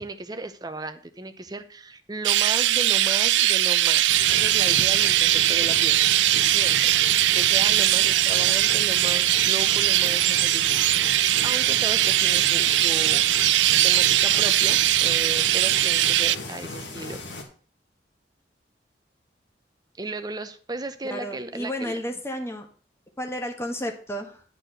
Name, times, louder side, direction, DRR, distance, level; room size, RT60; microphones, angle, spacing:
voice 1, 0.0-6.0 6.4-6.9 7.3-13.3 13.7-17.2 20.0-22.0, right 2 dB, 20° right, 9 dB, 0.8 m, -35 dB
Chirp tweet, 2.2-16.4, right 14 dB, 80° right, 0.4 m, -20 dB
sound 1, 4.1-17.4, left 2 dB, 80° left, 2.0 m, -37 dB
voice 2, 21.0-22.7 23.2-24.4, equal, 15° left, 4 dB, 1.3 m, -32 dB
11.0 x 4.4 x 6.5 m, 0.43 s
head